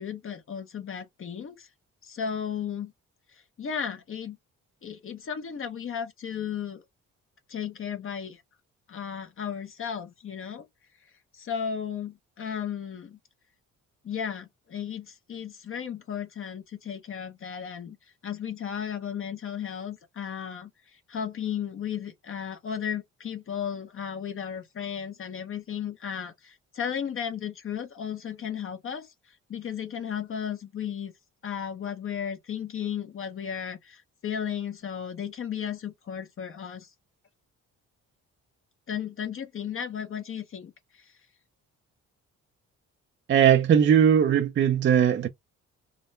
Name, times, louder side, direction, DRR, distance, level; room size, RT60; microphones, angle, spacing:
voice 1, 0.0-1.7 2.0-2.9 3.3-4.4 4.8-6.8 7.5-8.4 8.9-10.6 11.3-13.2 14.0-18.0 18.2-31.1 31.4-36.9 38.9-41.2, left 8 dB, 45° left, 0.8 m, -35 dB
voice 2, 43.3-45.3, right 8 dB, 40° right, 0.5 m, -19 dB
3.7 x 2.1 x 2.6 m
cardioid pair, 90°, 30 cm